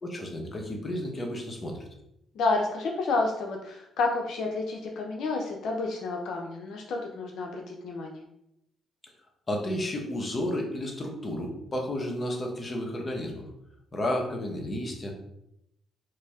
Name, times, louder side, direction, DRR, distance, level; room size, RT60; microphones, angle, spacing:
voice 1, 0.0-1.8 9.5-13.4 13.9-15.1, left 1 dB, 30° left, 1 dB, 0.8 m, -32 dB
voice 2, 2.3-8.2, left 3 dB, 75° left, 1 dB, 0.5 m, -30 dB
4.6 x 2.6 x 2.3 m, 0.80 s
cardioid pair, 90°, 0 cm